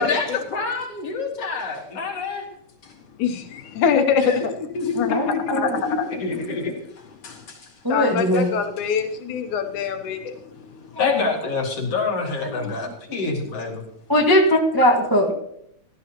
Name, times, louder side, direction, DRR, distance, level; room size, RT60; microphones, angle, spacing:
voice 1, 0.0-2.5 2.8-2.9 4.2-7.7 8.3-8.4 11.0-13.8 14.2-14.3, left 4 dB, 55° left, 0 dB, 3.3 m, -27 dB
voice 2, 3.2-4.5 5.0-5.7 7.9-10.3, left 6 dB, 85° left, 6 dB, 2.4 m, -23 dB
voice 3, 5.1-5.7 7.8-8.5 13.1-13.2 14.1-15.3, equal, 15° right, 0 dB, 0.8 m, -19 dB
17.0 x 13.5 x 2.9 m, 0.72 s
omnidirectional pair, 3.4 m